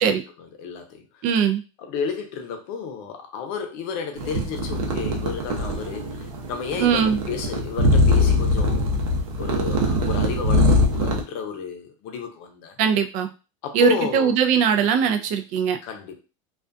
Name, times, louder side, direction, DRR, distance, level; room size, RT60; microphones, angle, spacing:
voice 1, 0.0-1.1 1.8-8.9 9.4-12.7 13.6-14.4 15.8-16.2, left 6 dB, 55° left, 5 dB, 0.7 m, -31 dB
voice 2, 1.2-1.6 6.8-7.2 12.8-13.3 13.7-15.8, right 7 dB, 45° right, 7 dB, 0.4 m, -20 dB
sound 1, 4.2-11.2, left 1 dB, 75° right, 0.7 m, -22 dB
2.4 x 2.2 x 2.5 m, 0.32 s
supercardioid pair, 125°, 18 cm